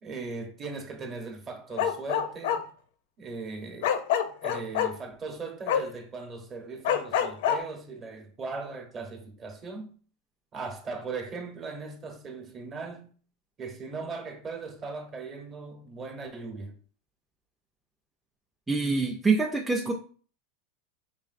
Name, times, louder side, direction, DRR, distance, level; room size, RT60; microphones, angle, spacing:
voice 1, 0.0-2.7 3.2-3.9 4.4-9.9 10.5-13.1 13.6-16.8, right 4 dB, 25° right, 0.9 m, -38 dB
Bark, 1.7-2.6 3.8-4.9 5.7-5.8 6.8-7.6, left 9 dB, 70° left, 0.5 m, -25 dB
voice 2, 18.7-19.9, right 4 dB, 5° right, 0.4 m, -25 dB
4.8 x 3.2 x 2.5 m
supercardioid pair, 140°, 0 cm